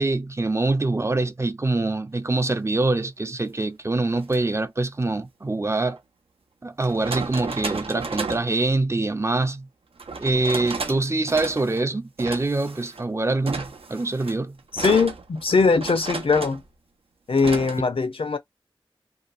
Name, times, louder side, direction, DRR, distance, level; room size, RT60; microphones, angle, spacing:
voice 1, 0.0-6.0 6.6-9.7 10.2-14.6, right 2 dB, 30° right, 0.4 m, -24 dB
sound 1, 4.2-4.4 6.0-6.1 6.8-8.5 10.0-11.0 11.3-11.8 12.2-13.0 13.5-16.7 17.4-17.8, right 4 dB, 85° right, 0.5 m, -33 dB
voice 2, 14.7-16.6 17.3-18.4, left 4 dB, 80° left, 0.5 m, -21 dB
2.7 x 2.2 x 2.4 m
wide cardioid pair, 65°, 9 cm